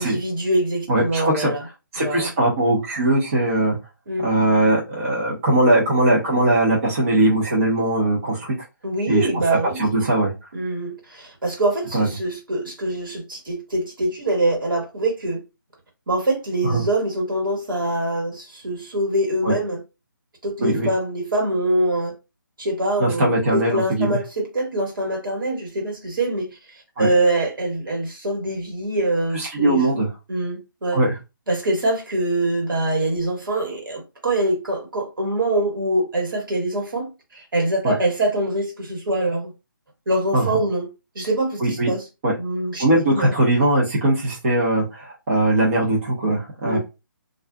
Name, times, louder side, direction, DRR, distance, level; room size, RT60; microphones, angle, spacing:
voice 1, 0.0-1.6 2.0-2.3 4.1-4.3 8.8-9.8 10.1-10.2 10.5-15.4 16.1-19.8 20.4-22.1 22.6-26.5 27.0-29.8 30.3-31.0 31.5-39.5 40.1-40.9 41.1-42.0 42.4-43.3 46.6-46.8, right 1 dB, 70° right, 1.3 m, -24 dB
voice 2, 0.9-1.5 1.9-3.8 4.2-8.5 9.1-10.3 11.9-12.1 16.6-16.8 19.4-19.5 20.6-20.9 23.0-24.2 27.0-27.1 29.3-30.1 30.9-31.2 37.8-37.9 40.3-40.6 41.6-41.9 42.2-42.3 42.8-46.8, right 1 dB, 40° right, 0.9 m, -20 dB
2.4 x 2.4 x 2.3 m
figure-of-eight pair, 155°, 11 cm